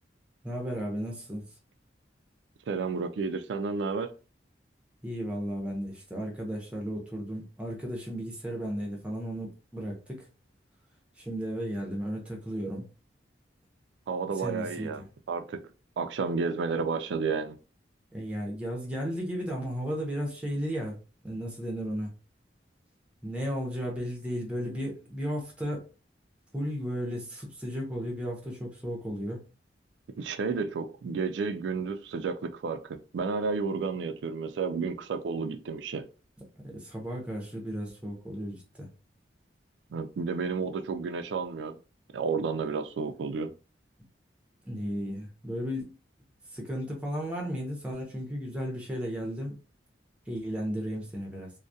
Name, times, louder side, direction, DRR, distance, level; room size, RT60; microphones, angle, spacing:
voice 1, 0.4-1.5 5.0-10.3 11.2-12.9 14.3-14.9 18.1-21.0 21.2-22.1 23.2-25.8 26.5-29.4 36.6-38.9 44.6-45.9 46.5-49.6 50.3-51.5, equal, 5° right, 0.6 m, -34 dB
voice 2, 2.7-4.1 14.1-15.0 15.3-15.6 16.0-17.6 30.2-36.1 39.9-41.8 42.1-43.5, right 4 dB, 75° right, 0.3 m, -31 dB
2.3 x 2.1 x 2.6 m
head